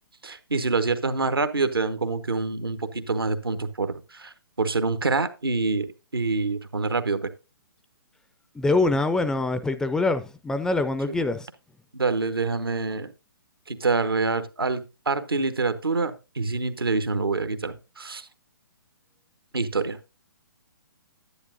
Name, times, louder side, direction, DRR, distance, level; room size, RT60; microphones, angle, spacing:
voice 1, 0.2-5.9 6.1-7.3 11.9-13.1 13.7-18.3 19.5-20.0, right 3 dB, 80° right, 1.0 m, -26 dB
voice 2, 8.6-11.5, left 2 dB, 5° left, 0.3 m, -24 dB
10.0 x 9.2 x 2.6 m
figure-of-eight pair, 130°, 12 cm